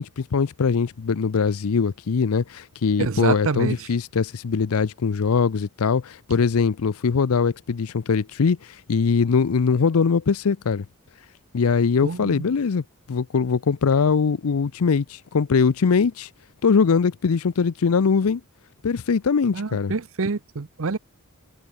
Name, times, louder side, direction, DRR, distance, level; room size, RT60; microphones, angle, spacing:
voice 1, 0.0-8.6 8.9-10.9 11.5-16.3 16.6-18.4 18.8-19.9, left 5 dB, 75° left, 0.5 m, -21 dB
voice 2, 3.0-3.9 12.0-12.4 19.5-21.0, right 4 dB, 65° right, 0.8 m, -26 dB
head